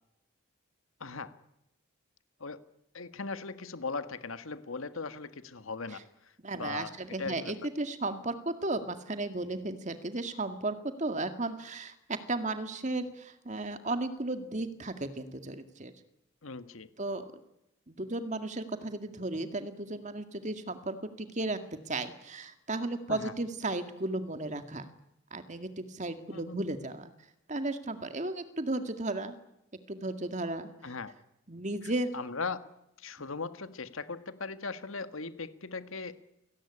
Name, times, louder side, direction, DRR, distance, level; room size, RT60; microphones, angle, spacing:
voice 1, 1.0-1.3 2.4-2.6 2.9-6.0 6.5-6.9 7.2-7.5 16.4-16.9 23.1-23.3 26.3-26.6 30.8-31.1 32.1-32.6 33.0-36.2, left 4 dB, 85° left, 11 dB, 1.7 m, -38 dB
voice 2, 6.4-15.9 17.0-17.3 17.9-21.6 21.9-24.9 25.3-27.1 27.5-29.3 29.9-30.7 31.5-32.1, right 2 dB, 35° right, 9 dB, 2.1 m, -34 dB
28.5 x 18.5 x 10.0 m, 0.89 s
head